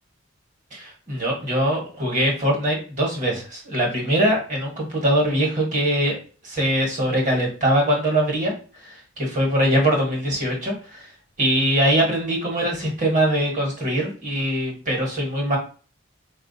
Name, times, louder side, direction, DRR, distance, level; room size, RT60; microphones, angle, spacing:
voice 1, 0.7-6.2 6.4-8.5 8.8-11.1 11.4-15.6, right 1 dB, 35° right, -1 dB, 1.2 m, -22 dB
4.2 x 2.4 x 2.7 m, 0.37 s
head